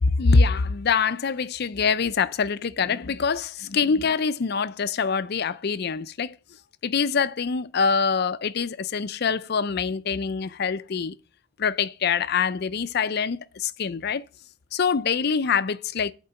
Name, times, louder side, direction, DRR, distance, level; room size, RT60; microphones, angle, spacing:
voice 1, 0.0-6.3 6.8-11.1 11.6-14.2 14.7-16.1, left 5 dB, 55° left, 0.5 m, -24 dB
8.6 x 4.5 x 7.0 m
head